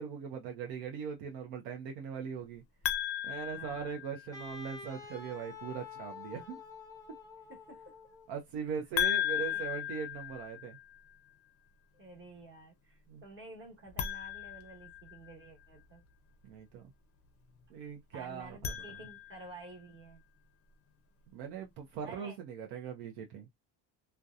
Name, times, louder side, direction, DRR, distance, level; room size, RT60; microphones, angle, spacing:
voice 1, 0.0-2.6 3.2-6.6 8.3-10.8 13.1-13.2 16.4-16.8 17.7-18.7 21.3-23.5, right 7 dB, 85° right, 0.7 m, -40 dB
sound 1, 2.8-4.5 9.0-11.0 13.9-15.5 18.4-19.6, left 11 dB, 35° left, 0.5 m, -36 dB
voice 2, 3.5-4.0 7.5-7.9 9.3-9.8 11.9-16.0 18.1-20.2 22.0-22.4, right 2 dB, 30° right, 1.1 m, -51 dB
Wind instrument woodwind instrument, 4.3-8.4, left 5 dB, 10° left, 0.8 m, -48 dB
2.7 x 2.2 x 2.3 m
cardioid pair, 125°, 42 cm